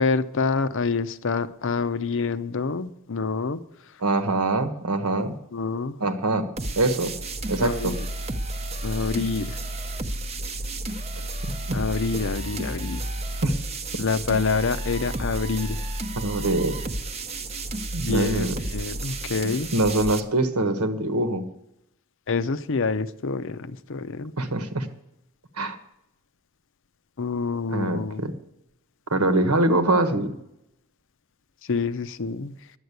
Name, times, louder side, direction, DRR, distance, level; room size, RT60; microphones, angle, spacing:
voice 1, 0.0-3.6 5.2-6.0 7.6-8.0 8.8-9.6 11.7-13.0 14.0-15.8 18.0-19.7 22.3-24.3 27.2-28.2 31.7-32.6, left 4 dB, 60° left, 13 dB, 0.6 m, -27 dB
voice 2, 4.0-5.4 6.0-6.5 6.8-7.1 7.5-8.0 11.4-11.8 13.4-13.6 16.2-16.8 17.9-18.6 19.7-21.4 24.4-24.9 25.6-25.8 27.7-28.3 29.1-30.3, right 2 dB, 85° right, 9 dB, 1.3 m, -24 dB
sound 1, 6.6-20.2, right 2 dB, 30° right, 0.8 m, -32 dB
11.5 x 8.0 x 8.2 m, 0.83 s
head